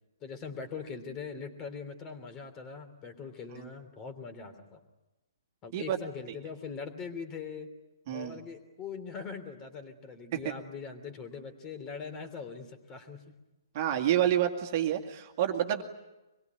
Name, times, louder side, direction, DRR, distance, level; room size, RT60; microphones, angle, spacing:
voice 1, 0.2-4.8 5.6-7.7 8.1-13.2 13.9-14.0, left 5 dB, 20° left, 9 dB, 3.2 m, -42 dB
voice 2, 8.1-8.4 10.3-10.5 13.7-15.8, right 11 dB, 40° right, 4 dB, 2.2 m, -28 dB
25.5 x 21.5 x 9.3 m, 1.0 s
figure-of-eight pair, 125°, 2 cm